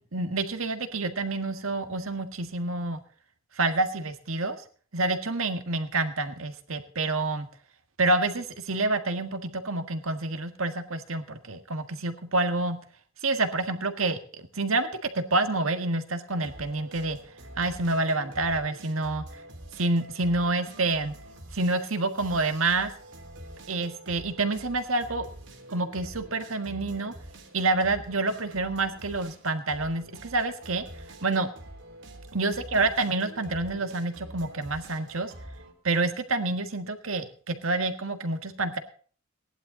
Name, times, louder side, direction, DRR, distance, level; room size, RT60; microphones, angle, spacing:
voice 1, 0.1-3.0 3.6-4.6 4.9-7.5 8.0-12.8 13.2-14.2 14.5-17.2 17.6-19.2 19.8-21.1 21.5-22.9 23.7-25.2 25.7-27.1 27.5-30.8 31.2-31.5 32.3-35.3 35.8-38.8, right 2 dB, 90° right, 8 dB, 1.8 m, -28 dB
sound 1, 16.3-35.7, right 1 dB, 60° right, 3.4 m, -46 dB
18.5 x 11.0 x 4.0 m, 0.43 s
head